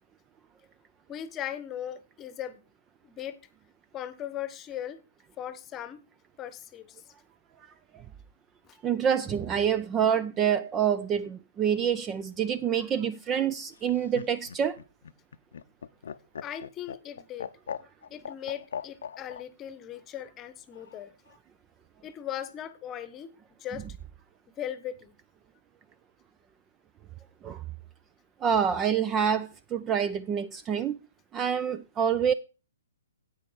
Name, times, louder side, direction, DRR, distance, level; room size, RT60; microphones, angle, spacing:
voice 1, 1.1-2.6 3.0-3.4 3.9-5.0 5.4-6.0 6.4-7.0 8.6-8.8 16.4-17.5 18.1-21.1 22.0-23.3 23.6-23.8 24.6-25.1, left 10 dB, 20° left, 1.0 m, -38 dB
voice 2, 8.8-14.8 27.4-27.6 28.4-31.0 31.3-32.3, right 8 dB, 20° right, 0.5 m, -27 dB
Laughter, 13.7-19.4 20.7-21.4, left 7 dB, 65° left, 0.6 m, -40 dB
10.0 x 8.6 x 4.6 m
figure-of-eight pair, 125°, 0 cm